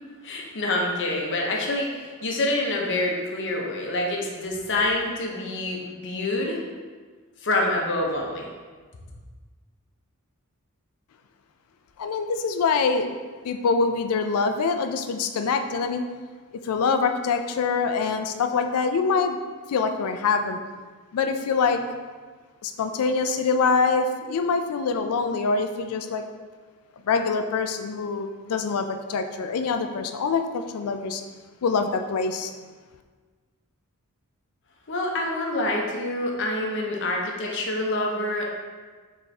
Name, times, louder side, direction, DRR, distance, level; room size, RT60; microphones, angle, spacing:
voice 1, 0.2-6.6 7.4-8.5 34.9-38.5, left 2 dB, 55° left, 0 dB, 0.7 m, -26 dB
voice 2, 12.0-13.1 13.4-16.0 16.7-19.4 19.7-20.6 21.1-21.8 22.6-26.2 27.1-31.2 31.6-32.5, left 4 dB, 75° left, 7 dB, 0.4 m, -24 dB
4.2 x 3.5 x 3.3 m, 1.4 s
head